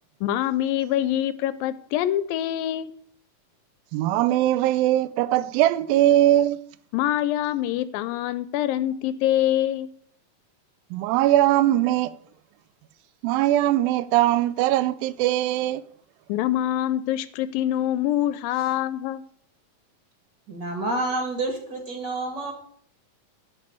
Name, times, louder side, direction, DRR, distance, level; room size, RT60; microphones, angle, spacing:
voice 1, 0.2-2.9 6.9-9.9 16.3-19.2, left 12 dB, 80° left, 2.3 m, -25 dB
voice 2, 3.9-6.6 10.9-12.2 13.2-15.8, right 14 dB, 85° right, 2.4 m, -21 dB
voice 3, 20.5-22.5, right 2 dB, 35° right, 2.7 m, -28 dB
11.0 x 5.3 x 8.3 m
omnidirectional pair, 4.1 m